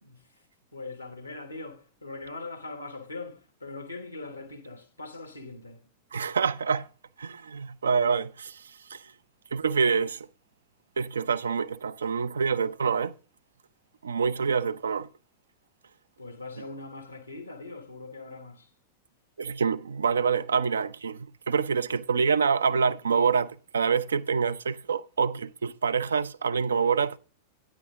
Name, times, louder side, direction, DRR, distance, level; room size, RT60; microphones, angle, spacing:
voice 1, 0.0-0.3 0.7-5.9 16.2-18.7, left 3 dB, 85° left, 1.5 m, -41 dB
voice 2, 6.1-6.9 7.2-8.6 8.9-9.0 9.5-10.3 11.0-13.1 14.0-15.1 19.4-27.2, right 5 dB, 70° right, 0.4 m, -26 dB
9.7 x 9.1 x 3.6 m
figure-of-eight pair, 90°, 0 cm